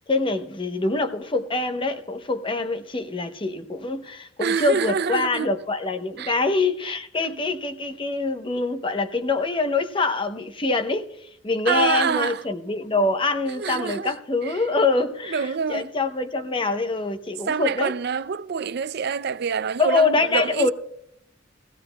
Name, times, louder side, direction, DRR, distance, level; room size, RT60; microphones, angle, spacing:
voice 1, 0.1-11.1 11.4-17.9 19.8-20.7, left 3 dB, 25° left, 0.8 m, -24 dB
voice 2, 4.4-5.5 6.2-6.4 7.2-7.4 11.7-12.4 13.5-14.2 14.4-14.6 15.3-15.9 17.5-20.7, right 6 dB, 60° right, 0.5 m, -26 dB
20.0 x 16.0 x 2.3 m
head